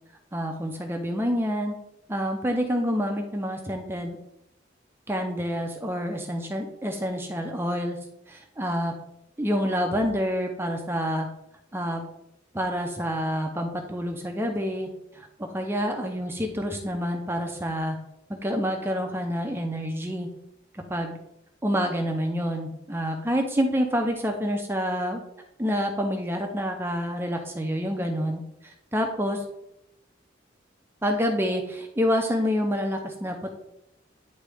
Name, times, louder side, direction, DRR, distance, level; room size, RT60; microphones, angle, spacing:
voice 1, 0.3-1.8 2.1-4.2 5.1-8.0 8.3-8.9 9.4-11.3 11.7-12.0 12.5-14.9 15.1-18.0 18.3-20.3 20.7-21.2 21.6-25.2 25.6-29.4 31.0-33.5, equal, 10° right, 3 dB, 0.6 m, -28 dB
9.8 x 3.6 x 3.5 m, 0.82 s
head